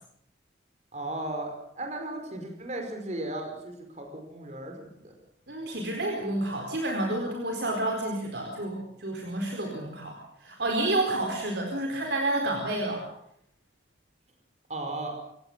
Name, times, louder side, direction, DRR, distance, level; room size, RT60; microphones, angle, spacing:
voice 1, 0.9-5.1 14.7-15.1, right 1 dB, 35° right, 4 dB, 5.0 m, -36 dB
voice 2, 5.5-13.0, right 1 dB, 65° right, 1 dB, 4.4 m, -30 dB
28.0 x 17.0 x 7.5 m, 0.73 s
head